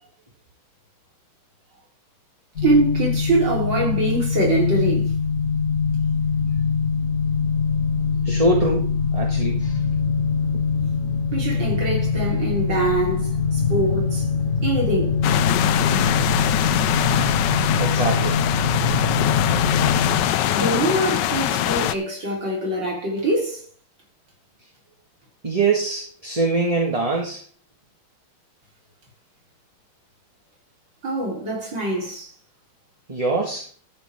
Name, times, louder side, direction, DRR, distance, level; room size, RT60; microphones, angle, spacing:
sound 1, 2.6-20.2, left 5 dB, 35° left, 1.8 m, -23 dB
voice 1, 2.6-5.1 11.3-14.3 14.6-15.2 20.5-23.6 31.0-32.3, right 2 dB, 55° right, 4.6 m, -23 dB
voice 2, 8.2-8.9 9.1-9.8 10.5-10.7 17.7-18.4 25.4-27.4 33.1-33.7, right 3 dB, 15° right, 1.8 m, -23 dB
sound 2, 15.2-21.9, left 12 dB, 70° left, 1.1 m, -23 dB
13.5 x 8.9 x 3.7 m
omnidirectional pair, 2.3 m